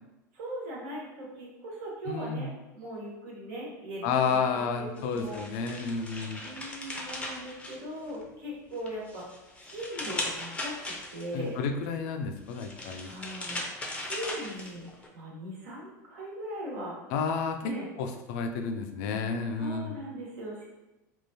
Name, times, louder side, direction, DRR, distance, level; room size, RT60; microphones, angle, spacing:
voice 1, 0.3-5.4 6.4-9.3 9.6-11.6 13.0-13.6 13.9-14.9 15.1-17.0 17.6-17.9 19.6-20.7, right 1 dB, 65° right, -3 dB, 1.2 m, -39 dB
voice 2, 2.1-2.5 4.0-6.5 11.3-13.2 17.1-19.9, left 5 dB, 60° left, 5 dB, 0.5 m, -31 dB
sound 1, 5.0-8.3 8.7-11.5 12.4-15.1, left 1 dB, 10° left, 0.6 m, -38 dB
3.7 x 2.4 x 2.7 m, 1.0 s
hypercardioid pair, 85°, 10 cm